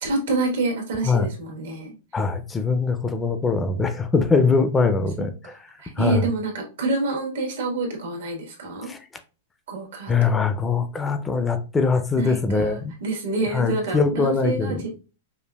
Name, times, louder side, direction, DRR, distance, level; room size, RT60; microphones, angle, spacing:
voice 1, 0.0-1.9 5.2-5.3 5.8-8.9 9.7-10.3 12.1-15.0, right 3 dB, 80° right, 1.3 m, -27 dB
voice 2, 2.1-5.6 6.0-6.3 8.9-9.0 10.1-12.9 13.4-14.8, left 4 dB, 15° left, 0.4 m, -22 dB
5.0 x 2.4 x 2.2 m
hypercardioid pair, 140°, 0 cm